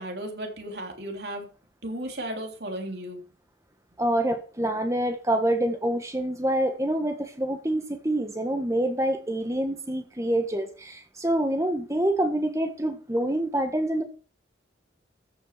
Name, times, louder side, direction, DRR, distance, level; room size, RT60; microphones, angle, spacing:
voice 1, 0.0-1.5 1.8-3.2, right 1 dB, 60° right, 3.4 m, -35 dB
voice 2, 4.0-14.0, right 1 dB, 15° right, 1.4 m, -26 dB
14.0 x 6.4 x 5.9 m
head